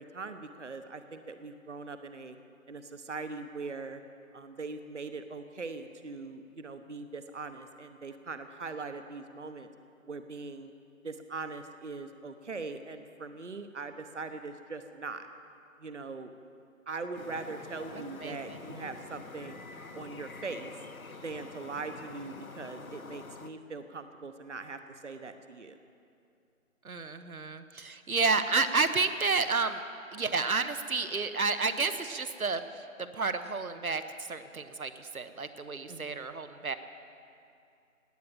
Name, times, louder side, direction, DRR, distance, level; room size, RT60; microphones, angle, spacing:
voice 1, 0.0-2.4 2.7-4.0 4.3-9.7 10.1-10.7 11.0-15.3 15.8-16.3 16.9-19.6 19.9-20.7 21.2-25.8 35.9-36.2, right 3 dB, 55° right, 9 dB, 1.0 m, -41 dB
sound 1, 17.1-23.5, left 3 dB, 80° left, 1.2 m, -46 dB
voice 2, 17.9-18.6 26.8-29.8 30.1-34.0 34.3-36.8, right 4 dB, 85° right, 10 dB, 1.1 m, -31 dB
18.0 x 10.0 x 7.6 m, 2.5 s
figure-of-eight pair, 170°, 41 cm